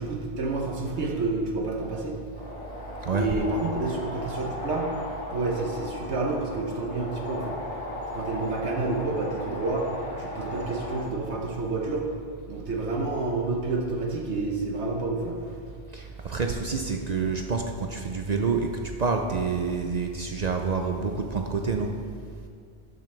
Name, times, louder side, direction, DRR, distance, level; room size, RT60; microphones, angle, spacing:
voice 1, 0.0-2.2 3.1-4.9 5.3-7.6 8.1-9.9 10.2-12.0 12.5-15.4 15.7-15.8, right 3 dB, 70° right, 0 dB, 1.2 m, -29 dB
sound 1, 2.3-11.0, left 1 dB, 30° left, 1.6 m, -37 dB
voice 2, 3.0-3.3 15.9-18.7 19.0-21.9, right 5 dB, 50° right, 3 dB, 0.5 m, -27 dB
12.0 x 6.8 x 3.3 m, 2.1 s
omnidirectional pair, 1.2 m